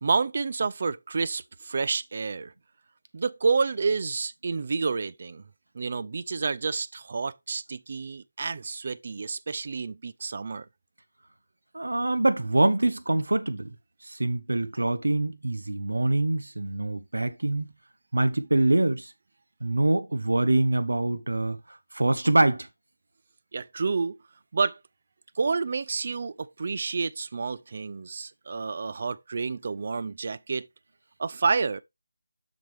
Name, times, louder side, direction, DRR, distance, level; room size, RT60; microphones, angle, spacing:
voice 1, 0.0-2.5 3.1-5.4 5.7-10.7 23.5-24.2 24.5-24.8 25.4-30.7 31.2-31.8, right 4 dB, 45° right, 0.4 m, -29 dB
voice 2, 11.7-13.7 14.0-17.7 18.1-19.1 19.6-22.7, right 2 dB, 80° right, 1.2 m, -25 dB
7.4 x 6.0 x 3.4 m
figure-of-eight pair, 165°, 0 cm